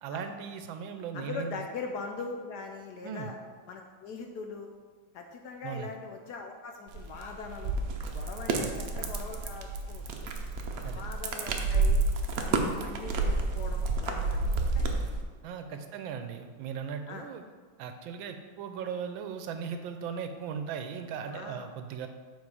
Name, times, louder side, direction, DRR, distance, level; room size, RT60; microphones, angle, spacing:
voice 1, 0.0-1.6 3.0-3.3 5.6-5.9 8.5-8.7 10.8-11.1 15.4-17.4 17.8-22.1, right 7 dB, 80° right, 7 dB, 1.4 m, -38 dB
voice 2, 1.1-3.4 3.7-4.7 5.1-7.8 8.1-10.3 10.9-12.1 12.4-14.9 15.7-15.8 17.1-17.3 21.3-21.7, left 4 dB, 70° left, 3 dB, 1.0 m, -41 dB
sound 1, 6.9-15.2, right 3 dB, 65° right, 0.9 m, -30 dB
7.4 x 4.5 x 4.7 m, 1.5 s
omnidirectional pair, 2.1 m